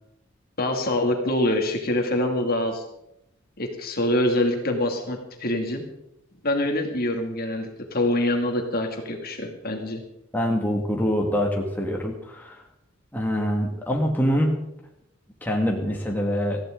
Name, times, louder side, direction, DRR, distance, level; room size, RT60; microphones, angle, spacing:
voice 1, 0.6-2.8 3.6-5.8 6.4-10.0, left 1 dB, 45° left, 3 dB, 2.4 m, -25 dB
voice 2, 10.3-12.6 13.1-14.5 15.4-16.6, equal, 10° left, -1 dB, 2.0 m, -24 dB
19.5 x 15.0 x 3.9 m, 0.82 s
head